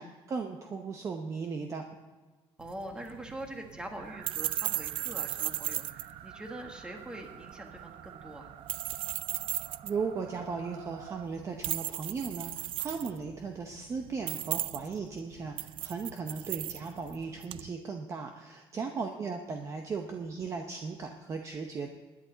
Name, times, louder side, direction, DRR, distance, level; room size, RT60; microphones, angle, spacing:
voice 1, 0.0-1.8 9.8-21.9, right 5 dB, 30° right, 4 dB, 0.8 m, -37 dB
voice 2, 2.6-8.5 18.7-19.0, right 1 dB, 10° right, 3 dB, 1.5 m, -43 dB
sound 1, 2.6-17.7, right 13 dB, 55° right, 0.4 m, -37 dB
sound 2, 4.0-11.3, right 10 dB, 90° right, 0.8 m, -49 dB
21.0 x 10.5 x 4.0 m, 1.3 s
cardioid pair, 175°, 10 cm